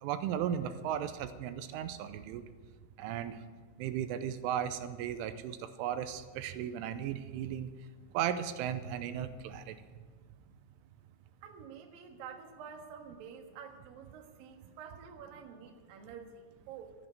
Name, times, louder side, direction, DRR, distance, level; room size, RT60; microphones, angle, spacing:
voice 1, 0.0-2.4 3.0-3.4 3.8-7.7 8.1-9.8, right 9 dB, 85° right, 11 dB, 3.2 m, -36 dB
voice 2, 11.4-16.9, right 7 dB, 60° right, 3 dB, 2.7 m, -49 dB
15.5 x 8.8 x 9.3 m, 1.5 s
omnidirectional pair, 5.7 m